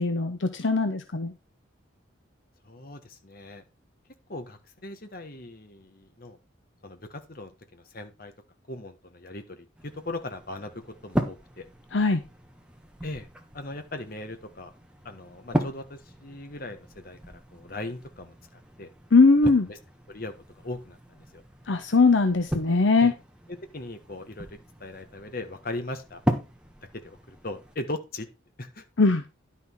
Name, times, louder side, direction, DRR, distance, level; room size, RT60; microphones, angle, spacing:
voice 1, 0.0-1.3 11.9-12.2 19.1-19.7 21.7-23.1 29.0-29.2, left 3 dB, 65° left, 8 dB, 0.8 m, -20 dB
voice 2, 2.6-3.6 4.3-6.4 6.8-8.3 8.7-11.6 13.0-13.3 13.5-14.7 15.0-18.9 19.7-19.8 20.1-21.4 23.0-23.1 23.7-24.5 24.8-26.2 26.9-28.3 28.6-28.8, left 2 dB, 45° left, 7 dB, 1.3 m, -39 dB
sound 1, 9.7-27.8, equal, 5° right, 1.2 m, -37 dB
10.5 x 5.9 x 4.6 m, 0.28 s
head